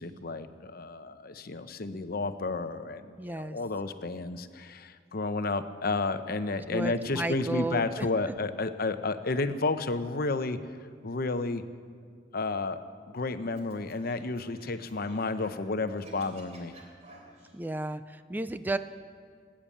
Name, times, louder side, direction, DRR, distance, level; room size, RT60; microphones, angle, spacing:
voice 1, 0.0-10.6 11.0-11.6 12.3-12.8 13.1-16.7, left 3 dB, 55° left, 10 dB, 0.8 m, -31 dB
voice 2, 3.2-3.6 6.7-8.1 17.5-18.8, right 2 dB, 10° right, 11 dB, 0.4 m, -33 dB
Scratching (performance technique), 13.6-15.7 15.9-17.5, right 2 dB, 40° right, 3.3 m, -54 dB
19.0 x 8.8 x 8.5 m, 2.1 s
head